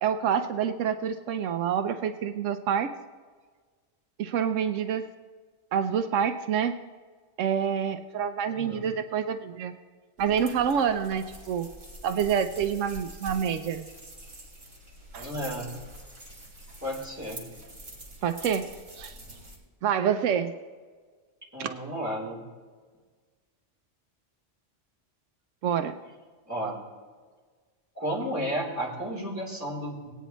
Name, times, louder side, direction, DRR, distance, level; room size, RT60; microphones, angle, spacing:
voice 1, 0.0-2.9 4.2-5.1 5.7-6.8 7.4-9.7 10.2-11.7 12.0-13.9 15.1-15.3 18.2-19.2 19.8-20.5 21.6-21.7 25.6-26.0, right 8 dB, 85° right, 9 dB, 1.0 m, -27 dB
voice 2, 8.5-8.9 15.2-15.7 16.8-17.4 21.5-22.4 26.5-26.8 27.9-30.1, equal, 15° right, -6 dB, 3.4 m, -33 dB
sound 1, 10.2-19.6, right 1 dB, 65° right, 2.6 m, -45 dB
19.0 x 9.2 x 3.0 m, 1.5 s
omnidirectional pair, 1.3 m